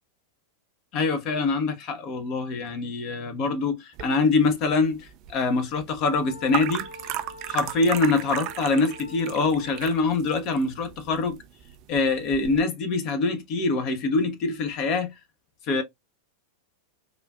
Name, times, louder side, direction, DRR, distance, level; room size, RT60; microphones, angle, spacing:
voice 1, 0.9-6.8 7.5-11.4 11.9-15.1 15.7-15.8, left 3 dB, 40° left, 0.8 m, -24 dB
sound 1, 3.9-12.6, right 13 dB, 40° right, 0.3 m, -36 dB
Wind instrument woodwind instrument, 6.0-10.1, left 1 dB, 80° left, 0.8 m, -45 dB
3.5 x 2.5 x 2.3 m
figure-of-eight pair, 90°, 0 cm